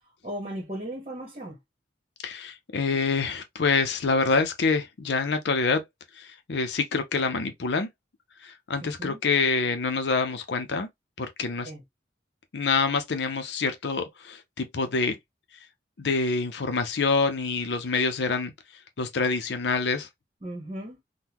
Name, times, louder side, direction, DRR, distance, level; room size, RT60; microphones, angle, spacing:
voice 1, 0.2-1.6 8.8-9.2 11.6-11.8 20.4-21.0, right 1 dB, 30° right, 1.1 m, -36 dB
voice 2, 2.2-5.8 6.1-7.9 8.4-10.9 11.2-11.7 12.5-15.2 16.0-18.5 19.0-20.1, left 4 dB, 65° left, 0.6 m, -26 dB
3.7 x 2.2 x 2.9 m
head